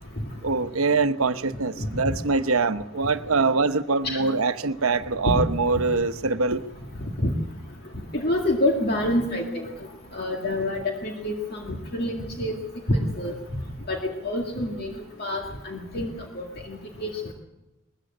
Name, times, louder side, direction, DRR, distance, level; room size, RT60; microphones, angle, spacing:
voice 1, 0.4-6.6, right 3 dB, 80° right, 10 dB, 1.0 m, -23 dB
voice 2, 7.0-7.3 8.1-9.7 10.1-12.5 12.9-13.3 13.9-14.9 15.2-17.1, left 1 dB, 45° left, 1 dB, 2.1 m, -27 dB
20.5 x 14.5 x 8.7 m, 1.0 s
head